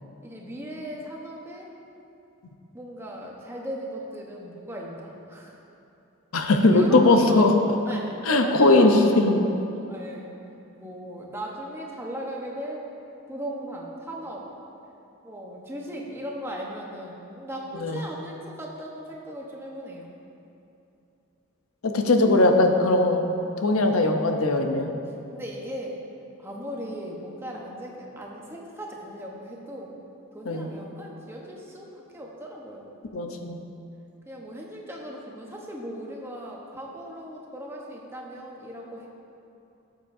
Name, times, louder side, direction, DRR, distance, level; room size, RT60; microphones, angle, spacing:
voice 1, 0.2-1.7 2.7-5.6 6.4-7.5 7.9-10.3 10.8-12.9 13.3-14.5 15.2-20.1 25.3-26.0 26.4-29.9 30.3-32.9 34.3-39.1, equal, 10° right, -2 dB, 1.0 m, -37 dB
voice 2, 6.3-7.5 8.3-9.4 17.8-18.0 21.8-23.3 23.6-24.9 30.5-30.7 33.1-33.6, left 2 dB, 85° left, 5 dB, 0.7 m, -20 dB
13.0 x 7.4 x 2.7 m, 2.8 s
head